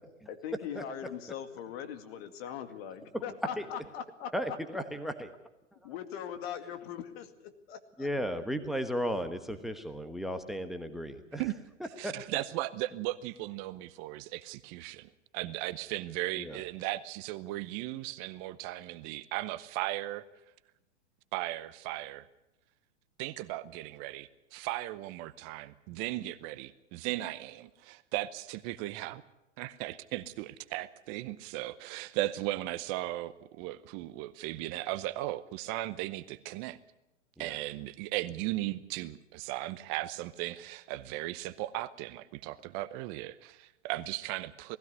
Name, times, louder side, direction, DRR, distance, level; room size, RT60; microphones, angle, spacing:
voice 1, 0.3-4.6 5.8-8.1, left 9 dB, 50° left, 9 dB, 2.3 m, -41 dB
voice 2, 4.3-5.3 8.0-11.4 12.0-12.4 16.4-16.6 37.4-37.6, equal, ahead, 9 dB, 1.2 m, -35 dB
voice 3, 12.0-20.2 21.3-22.3 23.2-29.2 29.6-36.8 37.4-44.8, right 16 dB, 35° right, 14 dB, 0.8 m, -37 dB
19.5 x 15.5 x 9.5 m, 0.91 s
hypercardioid pair, 120°, 38 cm